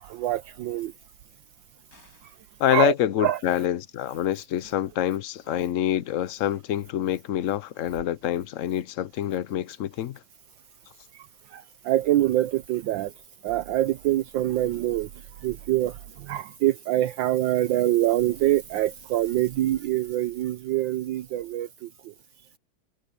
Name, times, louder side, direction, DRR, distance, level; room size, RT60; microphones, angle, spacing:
voice 1, 0.1-0.9 2.7-2.9 3.2-3.4 11.5-13.1 13.4-15.1 15.4-15.9 16.3-21.9, right 14 dB, 75° right, 1.3 m, -25 dB
sound 1, 1.9-2.6, left 2 dB, 45° left, 5.8 m, -58 dB
voice 2, 2.6-10.2, left 11 dB, 80° left, 0.7 m, -26 dB
omnidirectional pair, 2.1 m